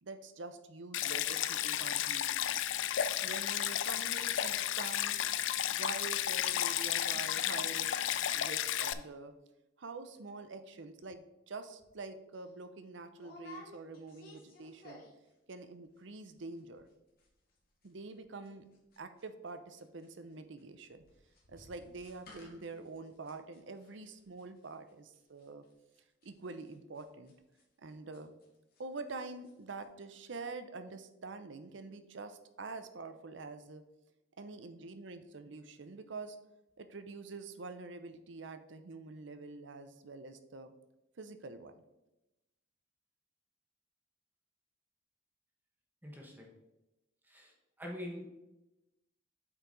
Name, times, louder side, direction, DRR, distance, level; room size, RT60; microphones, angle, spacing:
voice 1, 0.0-2.6 3.2-5.2 5.7-8.1 8.3-9.3 9.8-15.0 15.5-16.9 17.8-18.6 19.0-21.0 21.5-25.6 26.2-27.3 27.8-28.3 28.8-33.8 34.4-36.4 36.8-40.7 41.2-41.7, right 3 dB, 65° right, 9 dB, 0.6 m, -46 dB
Stream, 0.9-8.9, left 11 dB, 70° left, 0.4 m, -33 dB
sound 1, 11.8-12.0 12.3-12.5 13.2-15.3 15.6-16.0 16.2-16.3 16.6-16.9 17.2-19.5 19.8-28.8 29.1-29.5 29.8-29.9, left 2 dB, 50° left, 2.0 m, -57 dB
voice 2, 46.0-46.5 47.2-48.3, left 1 dB, 10° right, 0 dB, 1.1 m, -45 dB
8.6 x 4.6 x 4.0 m, 0.95 s
head